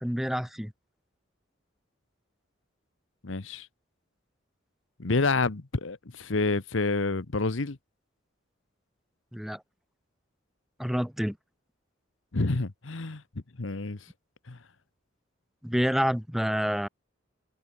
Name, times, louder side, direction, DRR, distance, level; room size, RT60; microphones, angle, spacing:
voice 1, 0.0-0.7 9.3-9.6 10.8-11.4 15.6-16.9, equal, ahead, 1.2 m, -28 dB
voice 2, 3.2-3.7 5.0-7.8 12.3-13.2 13.6-14.0 14.5-14.6, left 3 dB, 75° left, 1.1 m, -28 dB
head